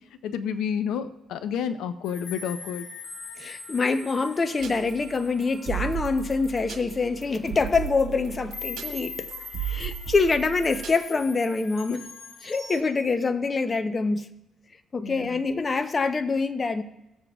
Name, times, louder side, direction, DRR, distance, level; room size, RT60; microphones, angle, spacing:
voice 1, 0.2-2.9 15.0-15.4, left 7 dB, 85° left, 0.5 m, -30 dB
sound 1, 2.0-7.1 7.6-7.8 8.5-12.8, left 4 dB, 60° left, 1.6 m, -42 dB
voice 2, 3.4-9.3 9.6-12.1 12.4-14.4 14.9-16.8, left 4 dB, 35° left, 0.7 m, -25 dB
sound 2, 4.6-11.0, right 10 dB, 75° right, 1.5 m, -36 dB
18.5 x 7.0 x 2.4 m
cardioid pair, 90°, 0 cm